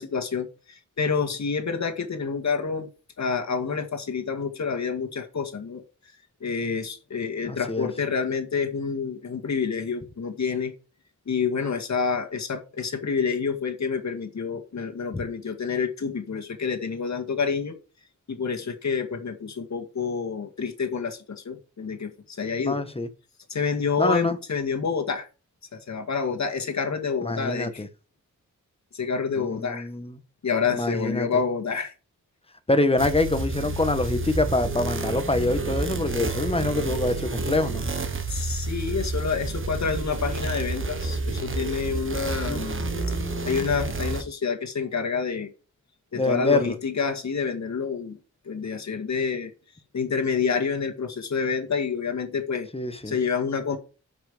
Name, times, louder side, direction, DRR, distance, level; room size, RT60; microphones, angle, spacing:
voice 1, 0.0-2.9 3.2-5.8 6.4-10.7 11.3-17.8 18.3-22.8 23.5-25.3 25.7-27.8 28.9-29.9 30.4-31.9 38.3-43.2 43.4-45.5 46.1-48.2 48.5-49.5 49.9-52.7 53.1-53.8, left 5 dB, 65° left, 2.0 m, -28 dB
voice 2, 7.5-7.9 22.6-23.1 24.0-24.4 27.2-27.9 29.3-30.2 30.7-31.3 32.7-37.8 42.5-43.7 46.1-46.8 52.7-53.2, left 2 dB, 20° left, 1.3 m, -26 dB
sound 1, 33.0-44.2, right 3 dB, 40° right, 1.3 m, -30 dB
10.0 x 6.0 x 5.2 m
wide cardioid pair, 95°, 31 cm